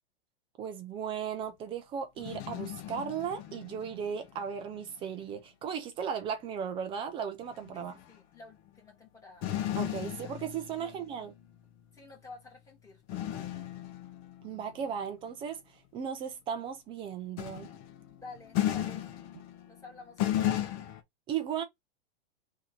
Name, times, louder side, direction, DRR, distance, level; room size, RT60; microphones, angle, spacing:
voice 1, 0.6-8.0 9.8-11.3 14.4-15.6 15.9-17.7 21.3-21.6, right 7 dB, 15° right, 0.4 m, -36 dB
sound 1, 2.2-4.3 4.7-4.9 7.5-8.0 8.5-8.7 9.4-11.4 13.1-14.6 17.4-19.9 20.2-21.0, left 12 dB, 35° left, 0.7 m, -35 dB
voice 2, 7.7-9.5 10.0-10.4 10.8-10.9 11.9-13.6 18.1-19.1 19.7-20.8, left 3 dB, 10° left, 1.9 m, -51 dB
3.7 x 2.8 x 4.4 m
supercardioid pair, 155°, 32 cm